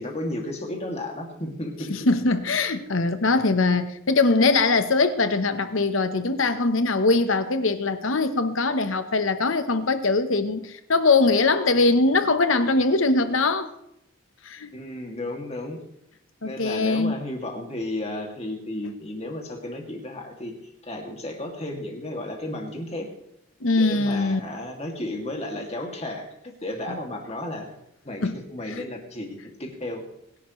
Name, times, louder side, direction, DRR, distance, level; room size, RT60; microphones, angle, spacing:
voice 1, 0.0-1.9 14.7-15.8 16.4-20.5 20.8-23.1 23.8-27.7 28.0-30.1, left 1 dB, 30° left, 2.5 m, -33 dB
voice 2, 1.9-13.7 14.4-14.7 16.4-17.1 23.6-24.4 26.9-27.0 28.2-28.4 28.8-28.9, left 3 dB, 80° left, 1.1 m, -22 dB
23.0 x 11.0 x 3.2 m
head